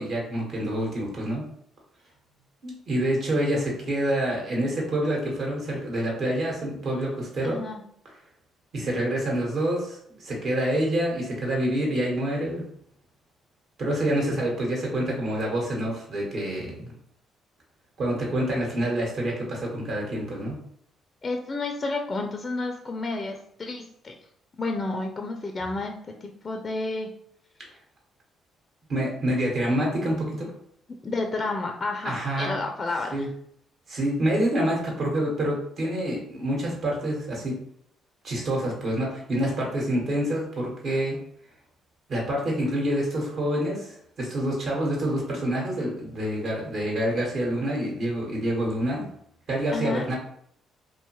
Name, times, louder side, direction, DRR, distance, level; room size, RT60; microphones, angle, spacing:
voice 1, 0.0-1.4 2.6-7.6 8.7-12.6 13.8-16.9 18.0-20.5 28.9-30.5 32.0-32.5 33.1-33.3 33.9-37.5 38.2-41.2 42.1-49.1 49.5-50.1, right 1 dB, 60° right, -2 dB, 1.1 m, -27 dB
voice 2, 7.4-7.8 21.2-24.1 24.6-27.1 31.0-33.3 49.7-50.1, left 3 dB, 35° left, 3 dB, 0.4 m, -31 dB
2.6 x 2.3 x 2.9 m, 0.69 s
supercardioid pair, 65°, 0 cm